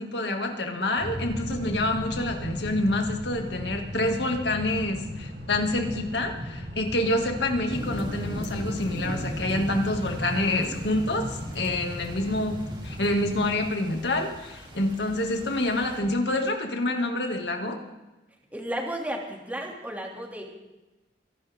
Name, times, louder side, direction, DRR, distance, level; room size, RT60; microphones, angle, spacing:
voice 1, 0.0-11.3 11.5-12.6 12.8-17.8, left 1 dB, 70° left, 3 dB, 2.5 m, -27 dB
sound 1, 1.0-13.6, equal, 65° right, 3.0 m, -37 dB
sound 2, 7.7-16.0, equal, 25° right, 3.6 m, -39 dB
voice 2, 18.5-20.4, right 1 dB, 10° right, 0 dB, 2.7 m, -34 dB
26.0 x 11.5 x 3.7 m, 1.1 s
head